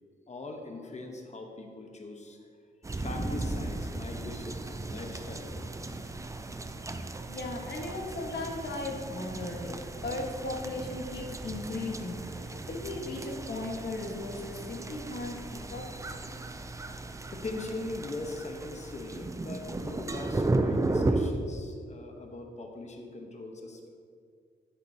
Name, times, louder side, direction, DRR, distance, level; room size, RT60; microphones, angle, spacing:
voice 1, 0.3-2.4 2.9-5.7 17.3-23.9, left 2 dB, 40° left, 3 dB, 1.1 m, -41 dB
sound 1, 2.8-21.3, right 2 dB, 15° right, 0.4 m, -35 dB
voice 2, 7.3-9.8 10.0-15.8, left 2 dB, 65° left, 0 dB, 1.5 m, -37 dB
9.5 x 8.2 x 2.8 m, 2.2 s
wide cardioid pair, 105°, 19 cm